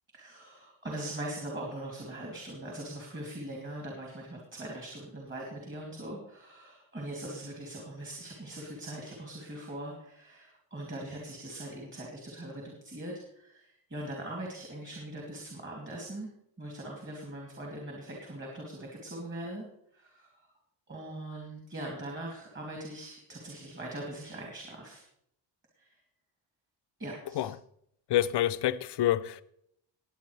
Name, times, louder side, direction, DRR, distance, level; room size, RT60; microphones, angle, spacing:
voice 1, 0.1-16.3 16.6-19.7 19.9-20.5 20.9-25.0 25.8-26.0 27.0-27.5, right 1 dB, 25° right, 2.7 m, -41 dB
voice 2, 28.1-29.4, left 12 dB, 60° left, 0.7 m, -27 dB
20.0 x 8.6 x 3.3 m
wide cardioid pair, 160°, 46 cm